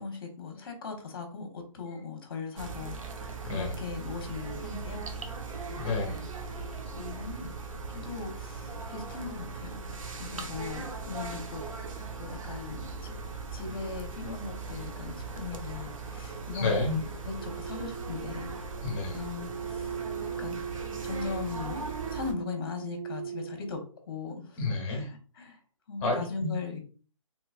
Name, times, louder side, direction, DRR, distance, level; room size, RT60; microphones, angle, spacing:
voice 1, 0.0-5.0 7.0-7.5 7.9-9.8 10.2-11.6 12.2-13.1 13.5-18.5 19.1-20.0 20.4-20.6 21.0-24.6 24.9-25.6 25.9-26.8, left 5 dB, 45° left, 4 dB, 1.0 m, -39 dB
sound 1, 2.6-22.3, right 4 dB, 70° right, 0.7 m, -39 dB
voice 2, 5.7-6.2 16.5-16.9 18.8-19.2 24.6-25.0 26.0-26.5, left 2 dB, 20° left, 0 dB, 1.2 m, -30 dB
sound 2, 17.4-23.7, right 8 dB, 25° right, 0.6 m, -39 dB
3.2 x 3.0 x 2.4 m, 0.39 s
hypercardioid pair, 165°, 18 cm